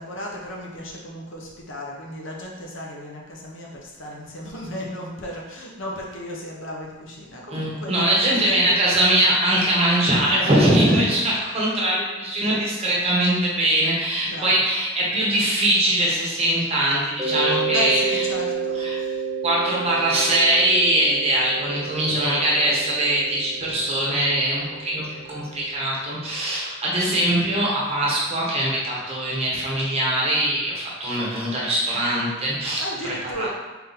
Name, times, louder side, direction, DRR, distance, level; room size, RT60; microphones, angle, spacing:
voice 1, 0.0-9.1 10.2-11.2 14.2-14.6 17.7-19.2 32.8-33.5, left 1 dB, 70° left, -2 dB, 0.9 m, -34 dB
voice 2, 7.5-18.2 18.7-19.0 19.4-32.8 33.4-33.5, right 1 dB, 30° right, -5 dB, 1.0 m, -22 dB
Mallet percussion, 17.2-25.8, right 5 dB, ahead, 1.0 m, -30 dB
4.0 x 2.8 x 4.0 m, 1.1 s
head